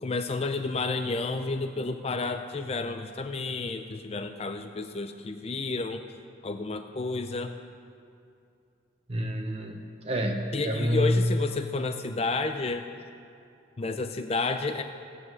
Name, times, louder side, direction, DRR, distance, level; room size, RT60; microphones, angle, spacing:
voice 1, 0.0-6.0 6.4-7.5 10.5-12.9 13.8-14.8, left 3 dB, 35° left, 7 dB, 0.4 m, -31 dB
voice 2, 9.1-11.4, equal, 30° right, 3 dB, 0.7 m, -28 dB
15.0 x 9.7 x 6.2 m, 2.5 s
head